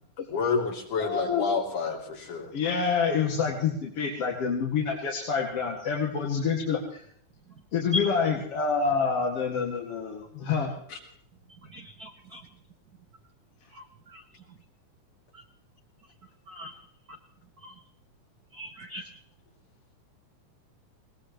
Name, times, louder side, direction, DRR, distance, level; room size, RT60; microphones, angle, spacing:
voice 1, 0.3-2.5 10.9-11.0, left 5 dB, 85° left, 0 dB, 4.4 m, -29 dB
voice 2, 1.0-1.5 2.5-7.0 7.7-10.7, left 5 dB, 55° left, -2 dB, 2.9 m, -27 dB
voice 3, 11.7-12.4 14.1-14.2 16.5-16.7 17.6-17.7 18.5-19.0, left 2 dB, 85° right, 4 dB, 0.8 m, -35 dB
20.0 x 19.0 x 3.1 m, 0.63 s
omnidirectional pair, 3.4 m